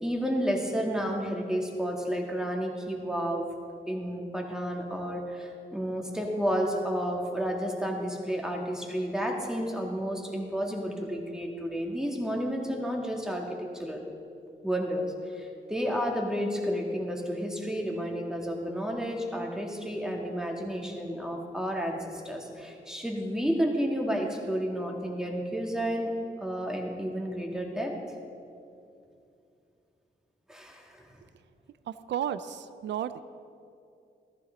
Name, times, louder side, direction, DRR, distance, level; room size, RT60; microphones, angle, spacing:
voice 1, 0.0-3.5 3.9-14.0 14.6-26.1 26.4-28.0 30.5-31.0, equal, 5° right, 0 dB, 1.8 m, -31 dB
voice 2, 31.9-33.2, right 10 dB, 85° right, 13 dB, 0.4 m, -33 dB
14.5 x 14.0 x 3.9 m, 2.6 s
wide cardioid pair, 100°, 18 cm